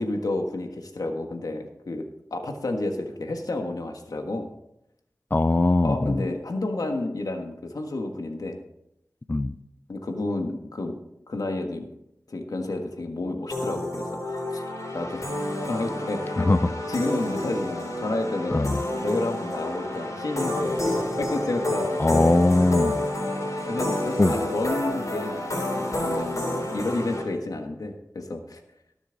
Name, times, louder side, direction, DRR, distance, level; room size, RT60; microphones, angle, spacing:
voice 1, 0.0-2.0 2.3-4.5 5.8-8.6 9.9-11.0 11.3-11.9 12.3-14.6 14.9-15.2 15.7-22.0 23.7-28.6, left 2 dB, 90° left, 5 dB, 1.4 m, -30 dB
voice 2, 5.3-6.2 9.3-9.6 16.5-16.6 18.5-18.8 22.0-23.0 24.2-24.3, left 2 dB, 30° left, 13 dB, 0.5 m, -20 dB
sound 1, 13.5-27.2, left 1 dB, 60° left, 3.7 m, -29 dB
19.0 x 7.1 x 3.9 m, 0.81 s
wide cardioid pair, 45°, 6 cm